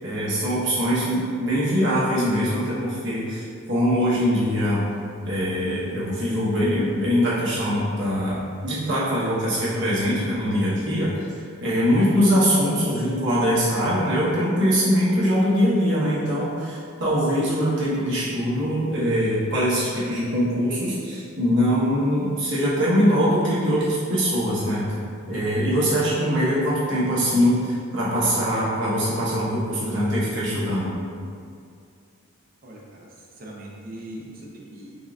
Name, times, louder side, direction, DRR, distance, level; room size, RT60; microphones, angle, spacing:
voice 1, 0.0-4.8 5.2-11.1 11.6-24.9 25.3-30.9, equal, 60° right, -8 dB, 1.0 m, -22 dB
voice 2, 32.6-35.0, right 1 dB, 40° right, -3 dB, 0.6 m, -41 dB
5.4 x 2.5 x 2.3 m, 2.3 s
head